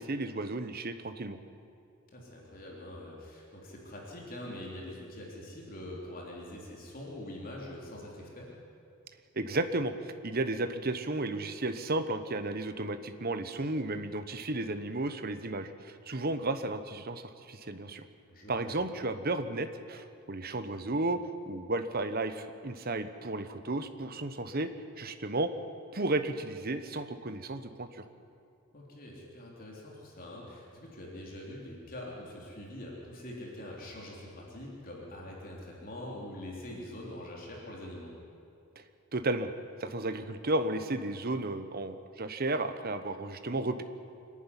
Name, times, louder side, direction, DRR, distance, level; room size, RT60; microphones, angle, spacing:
voice 1, 0.0-1.4 9.3-9.9 10.2-18.0 18.5-21.2 21.5-24.7 25.0-25.5 25.9-28.0 39.1-39.5 39.8-43.8, right 2 dB, 45° right, 10 dB, 1.1 m, -33 dB
voice 2, 2.1-8.6 18.3-18.7 28.7-38.1, left 1 dB, 40° left, -3 dB, 3.6 m, -44 dB
25.0 x 11.0 x 9.9 m, 2.5 s
head